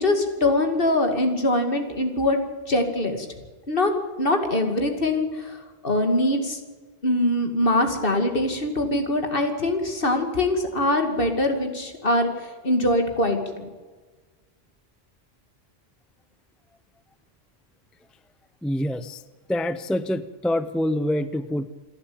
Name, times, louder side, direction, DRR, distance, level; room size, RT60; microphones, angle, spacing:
voice 1, 0.0-2.4 2.7-3.3 3.7-3.9 4.2-5.6 5.8-6.6 7.0-12.3 12.6-13.7, left 1 dB, 60° left, 6 dB, 2.6 m, -23 dB
voice 2, 18.6-19.2 19.5-21.7, left 1 dB, ahead, 14 dB, 0.5 m, -26 dB
28.0 x 11.5 x 8.7 m, 1.4 s
omnidirectional pair, 1.0 m